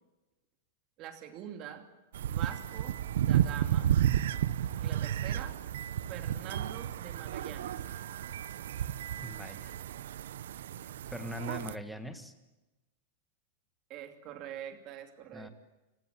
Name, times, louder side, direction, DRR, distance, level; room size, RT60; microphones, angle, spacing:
voice 1, 1.0-1.9 2.2-3.0 3.3-3.9 4.8-5.6 6.0-7.8 13.9-15.5, right 10 dB, 30° right, 7 dB, 2.7 m, -44 dB
sound 1, 2.1-11.7, right 11 dB, 75° right, 0.7 m, -32 dB
voice 2, 9.2-9.7 11.1-12.3 15.3-15.5, equal, ahead, 8 dB, 1.6 m, -41 dB
29.0 x 16.0 x 9.3 m, 1.1 s
supercardioid pair, 175°, 0 cm